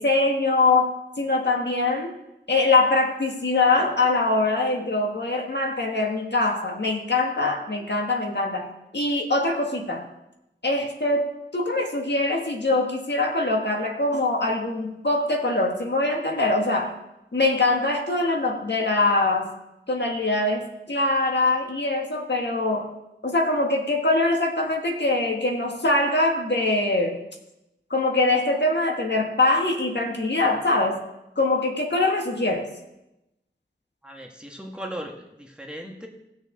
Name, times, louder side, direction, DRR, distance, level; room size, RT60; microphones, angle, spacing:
voice 1, 0.0-2.1 2.5-8.7 8.9-10.1 10.6-16.9 17.3-19.5 19.9-22.9 23.2-27.2 27.9-31.0 31.4-32.7, left 2 dB, 65° left, 2 dB, 1.6 m, -23 dB
voice 2, 34.0-36.1, equal, 5° right, 0 dB, 1.9 m, -38 dB
18.5 x 6.7 x 3.8 m, 0.90 s
wide cardioid pair, 55°, 19 cm